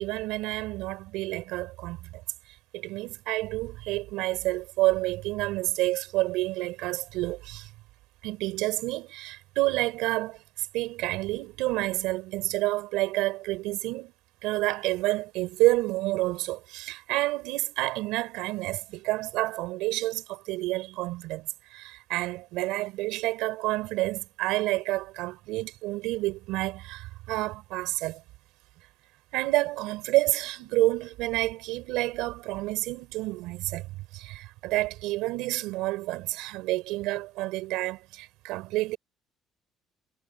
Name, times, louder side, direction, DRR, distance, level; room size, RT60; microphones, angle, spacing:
voice 1, 0.0-2.2 2.7-7.7 8.2-14.1 14.4-28.2 29.3-39.0, right 19 dB, 90° right, 4.8 m, -29 dB
cardioid pair, 120°, 0 cm